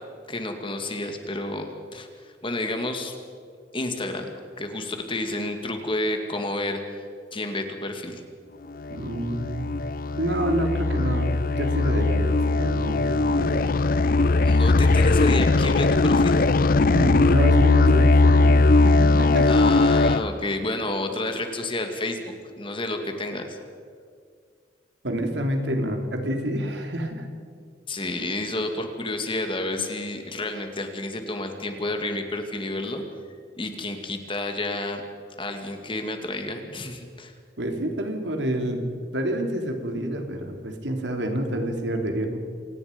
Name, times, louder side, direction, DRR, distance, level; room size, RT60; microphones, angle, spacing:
voice 1, 0.3-3.1 3.7-4.3 4.6-6.8 7.3-8.2 14.4-16.4 19.5-23.6 27.9-33.0 33.6-35.0 35.4-37.3, left 2 dB, 30° left, 5 dB, 2.3 m, -30 dB
sound 1, 8.8-20.2, left 3 dB, 55° left, 0.5 m, -19 dB
voice 2, 8.9-9.7 10.2-13.8 16.9-19.5 25.0-27.3 37.6-42.4, right 1 dB, 90° right, 4 dB, 3.1 m, -28 dB
27.0 x 18.5 x 5.3 m, 2.1 s
head